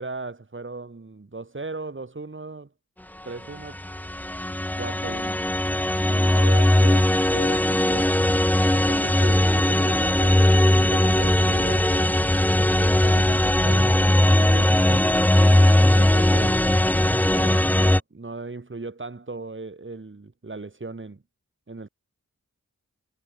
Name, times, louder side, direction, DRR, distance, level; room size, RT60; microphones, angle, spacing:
voice 1, 0.0-2.7 3.2-3.8 4.7-5.4 6.0-8.3 8.7-12.1 12.8-15.2 16.0-16.7 17.2-21.2 21.7-21.9, right 3 dB, 40° right, 2.1 m, -37 dB
sound 1, 3.6-18.0, left 1 dB, 5° left, 0.5 m, -19 dB
cardioid pair, 45°, 31 cm